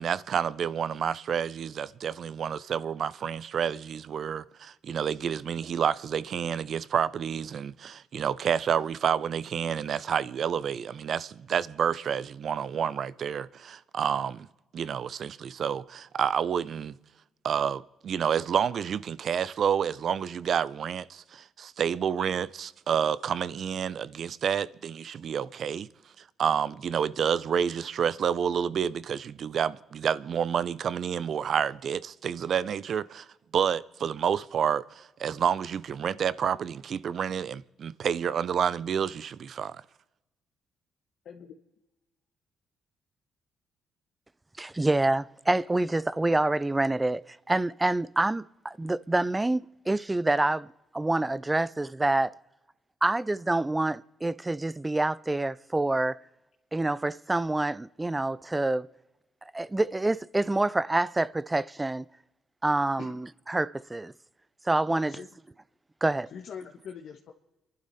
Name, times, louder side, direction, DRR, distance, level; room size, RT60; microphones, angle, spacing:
voice 1, 0.0-14.5 14.7-17.0 17.4-25.9 26.4-33.3 33.5-39.8, right 8 dB, 60° right, 0.6 m, -29 dB
voice 2, 44.6-50.7 50.9-52.3 53.0-56.2 56.7-58.9 59.5-62.1 62.6-64.1 64.7-65.2 66.0-66.3, right 2 dB, 15° right, 0.5 m, -27 dB
voice 3, 64.9-65.3 66.3-67.3, left 7 dB, 70° left, 1.3 m, -42 dB
29.0 x 11.5 x 4.2 m
cardioid pair, 90°, 0 cm